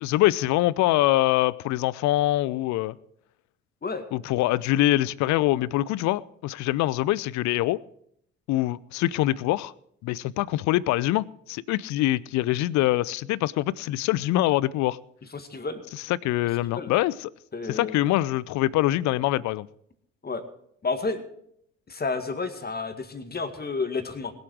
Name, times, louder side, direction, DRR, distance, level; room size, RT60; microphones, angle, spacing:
voice 1, 0.0-3.0 4.1-7.8 8.5-9.7 10.0-15.0 15.9-17.3 17.7-19.7, left 16 dB, 50° left, 0.6 m, -24 dB
voice 2, 15.3-15.8 16.7-16.9 17.5-18.0 20.2-20.4 20.8-21.2 21.9-24.3, left 4 dB, 25° left, 2.0 m, -30 dB
21.0 x 8.0 x 4.7 m
figure-of-eight pair, 55°, 38 cm